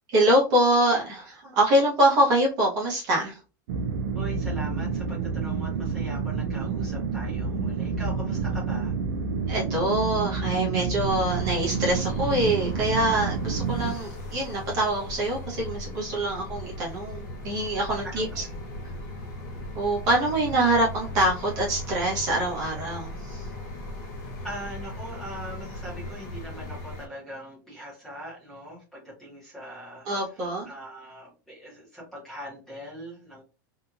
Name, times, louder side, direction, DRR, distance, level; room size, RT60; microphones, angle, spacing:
voice 1, 0.1-3.4 9.5-18.4 19.7-23.5 30.0-30.7, right 1 dB, 35° right, -3 dB, 1.0 m, -24 dB
sound 1, 3.7-13.9, right 5 dB, 70° right, 0.4 m, -29 dB
voice 2, 4.1-8.9 18.0-18.5 24.4-30.1 30.4-33.4, equal, 5° left, -6 dB, 1.1 m, -41 dB
sound 2, 11.0-27.1, left 1 dB, 50° left, 0.8 m, -38 dB
2.8 x 2.6 x 2.4 m, 0.31 s
supercardioid pair, 180°, 11 cm